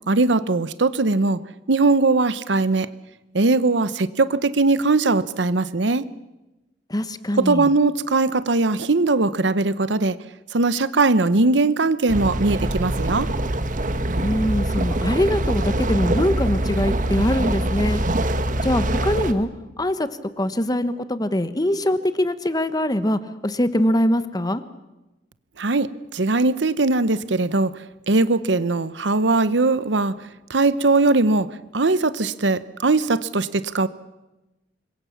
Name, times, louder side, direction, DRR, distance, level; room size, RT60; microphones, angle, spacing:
voice 1, 0.1-1.4 1.7-2.9 3.3-6.0 7.4-10.2 10.5-13.3 25.6-27.7 28.1-30.1 30.5-31.5 31.7-33.9, right 3 dB, 85° right, 15 dB, 0.9 m, -20 dB
voice 2, 6.9-7.7 14.2-18.0 18.6-19.5 19.8-20.1 20.4-24.6, left 1 dB, 20° left, 12 dB, 1.1 m, -23 dB
sound 1, 12.1-19.3, right 1 dB, 45° right, 1.4 m, -24 dB
26.0 x 22.5 x 7.1 m, 1.0 s
head